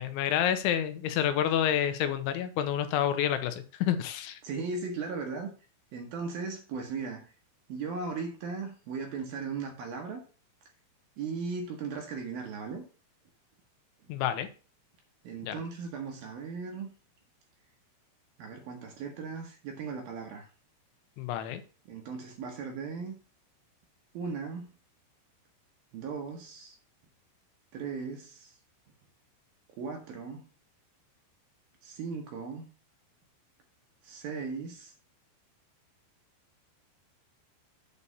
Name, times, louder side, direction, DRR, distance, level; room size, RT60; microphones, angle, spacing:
voice 1, 0.0-4.4 14.1-14.5 15.4-15.6 21.2-21.6, left 10 dB, 90° left, 10 dB, 3.2 m, -29 dB
voice 2, 4.4-5.5 5.9-7.3 7.7-10.2 11.2-12.8 15.2-16.9 18.4-20.5 21.9-23.1 24.1-24.7 25.9-26.8 27.7-28.6 29.8-30.5 31.8-32.7 34.0-34.9, right 5 dB, 70° right, 2 dB, 2.3 m, -37 dB
8.5 x 4.1 x 6.8 m, 0.36 s
omnidirectional pair, 5.5 m